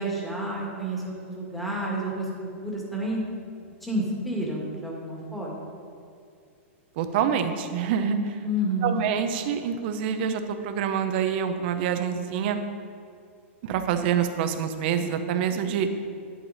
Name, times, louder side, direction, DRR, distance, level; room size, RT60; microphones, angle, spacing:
voice 1, 0.0-3.2 3.6-5.7 8.4-9.0, equal, ahead, -4 dB, 2.0 m, -30 dB
voice 2, 7.0-8.4 8.8-12.6 13.6-15.9, right 8 dB, 50° right, 8 dB, 0.9 m, -26 dB
9.9 x 8.7 x 4.2 m, 2.4 s
hypercardioid pair, 150°, 7 cm